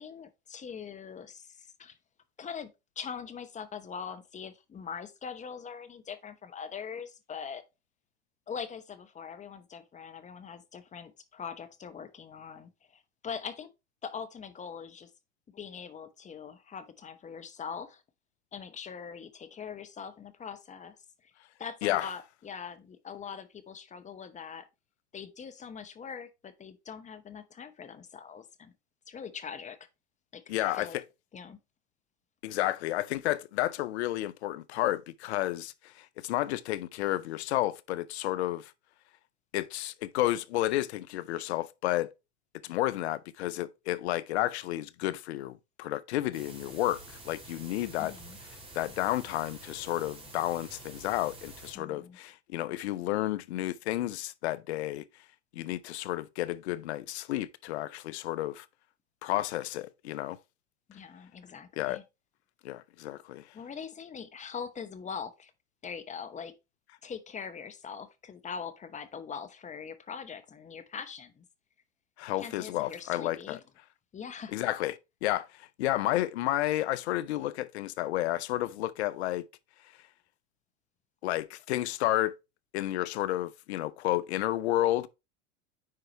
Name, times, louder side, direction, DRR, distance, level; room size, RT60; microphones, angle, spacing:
voice 1, 0.0-2.0 2.4-7.6 8.5-13.7 14.0-15.1 15.5-18.0 18.5-21.0 21.2-21.3 21.6-24.7 25.1-28.7 29.1-29.9 30.3-31.0 31.3-31.6 48.0-48.4 51.7-52.2 60.9-62.0 63.5-65.5 65.8-66.5 67.0-71.4 72.4-73.6 74.1-74.6, left 6 dB, 20° left, 0.9 m, -42 dB
voice 2, 30.5-31.0 32.4-38.7 39.5-42.1 42.6-48.1 48.7-55.0 55.5-58.7 59.2-60.4 61.8-62.0 62.6-63.4 72.2-73.6 74.5-74.9 75.2-79.4 81.2-82.3 82.7-85.1, left 15 dB, 70° left, 0.7 m, -31 dB
sound 1, 46.3-51.7, right 2 dB, 15° right, 2.5 m, -48 dB
9.5 x 4.6 x 2.9 m
hypercardioid pair, 100°, 34 cm